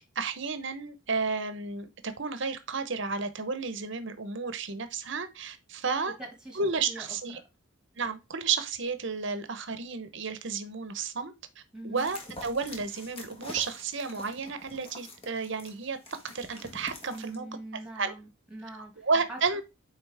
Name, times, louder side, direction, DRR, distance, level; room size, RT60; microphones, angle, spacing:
voice 1, 0.2-6.1 6.6-7.4 8.0-11.3 11.8-16.0 16.2-17.4 17.9-18.1 18.7-19.6, right 4 dB, 60° right, 0.9 m, -32 dB
voice 2, 6.0-7.1 7.3-7.4 11.7-12.1 17.1-19.4, right 1 dB, 5° right, 2.1 m, -43 dB
sound 1, 12.0-17.4, left 1 dB, 25° left, 1.5 m, -46 dB
9.1 x 3.9 x 3.5 m
head